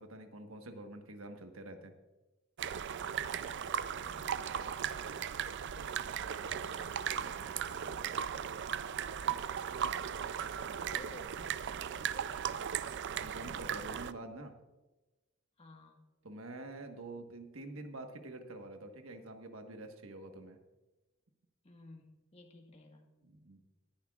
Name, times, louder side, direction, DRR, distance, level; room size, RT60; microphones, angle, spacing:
voice 1, 0.0-1.9 13.2-14.5 16.2-20.6 23.3-23.6, right 2 dB, 80° right, 5 dB, 1.4 m, -47 dB
sound 1, 2.6-14.1, right 8 dB, 60° right, 0.4 m, -37 dB
voice 2, 3.2-8.4 9.1-10.2 10.7-12.4 14.0-14.1 15.6-16.1 21.6-23.1, left 2 dB, 30° left, 1 dB, 1.5 m, -57 dB
19.0 x 10.5 x 2.4 m, 1.1 s
head